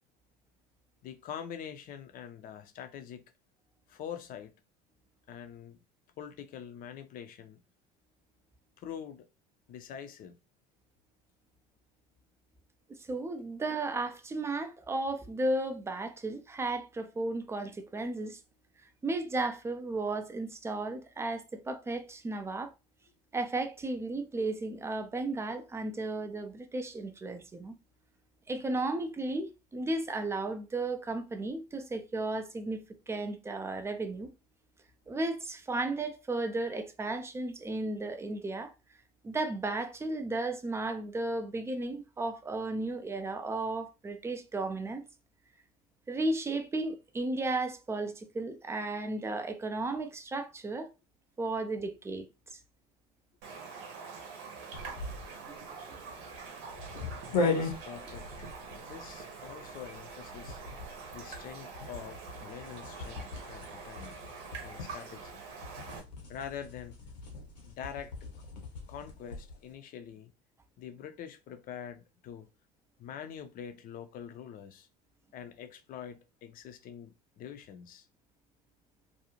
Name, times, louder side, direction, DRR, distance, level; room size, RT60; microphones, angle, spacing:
voice 1, 1.0-3.2 3.9-4.5 5.3-5.8 6.2-7.6 8.8-9.2 9.7-10.4 57.3-60.6 61.1-64.2 64.6-65.4 66.3-67.0 67.6-68.1 68.9-70.3 70.8-72.5 73.0-74.9 75.3-78.1, left 8 dB, 40° left, 0.6 m, -45 dB
voice 2, 13.0-18.4 19.0-22.7 23.3-27.7 28.5-34.3 35.1-38.7 39.2-45.0 46.1-50.9 51.4-52.6, right 2 dB, 10° right, 0.5 m, -34 dB
Raindrop, 53.4-66.0, right 5 dB, 60° right, 0.8 m, -45 dB
sound 1, 54.7-69.6, left 3 dB, 80° left, 0.9 m, -39 dB
2.6 x 2.3 x 2.9 m
hypercardioid pair, 70°, 21 cm